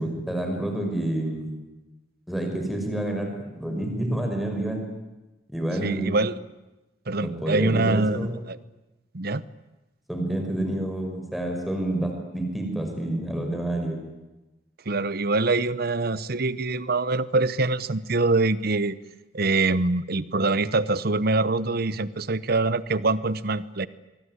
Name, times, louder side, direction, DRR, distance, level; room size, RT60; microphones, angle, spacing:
voice 1, 0.0-1.5 2.3-3.3 3.5-4.9 5.5-6.2 7.2-8.3 10.1-14.0, right 1 dB, ahead, 3 dB, 5.9 m, -28 dB
voice 2, 5.8-6.3 7.1-8.6 9.1-9.4 14.9-19.0 19.3-23.9, right 3 dB, 55° right, 16 dB, 1.0 m, -24 dB
25.0 x 23.0 x 9.8 m, 1.1 s
head